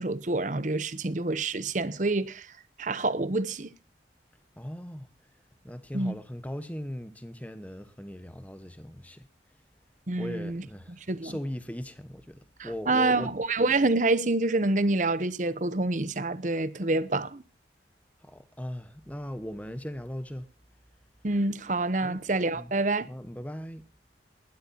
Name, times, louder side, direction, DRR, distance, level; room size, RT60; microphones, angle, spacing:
voice 1, 0.0-2.5 2.8-3.7 5.9-6.1 10.1-10.6 11.1-11.4 12.6-17.4 21.2-23.1, right 2 dB, 40° right, 0.8 m, -27 dB
voice 2, 4.6-5.1 5.6-9.3 10.2-13.3 18.2-20.5 22.0-22.2 22.5-22.7 23.1-23.9, equal, 10° left, 1.1 m, -39 dB
19.5 x 12.5 x 2.8 m
head